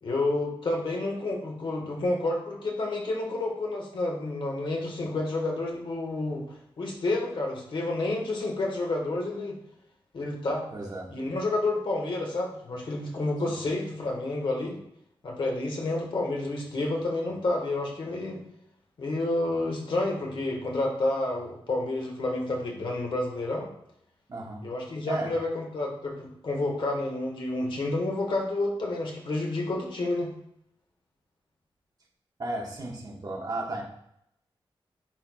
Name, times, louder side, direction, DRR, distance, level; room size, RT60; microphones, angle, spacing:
voice 1, 0.0-6.4 6.8-9.6 10.1-10.6 11.1-14.8 15.2-18.4 19.0-23.7 24.6-30.3, left 2 dB, 60° left, 0 dB, 1.6 m, -29 dB
voice 2, 10.7-11.1 13.5-13.6 24.3-24.6 25.1-25.4 32.4-33.8, right 2 dB, 45° right, -2 dB, 1.5 m, -34 dB
10.5 x 4.5 x 2.4 m, 0.75 s
wide cardioid pair, 150°, 9 cm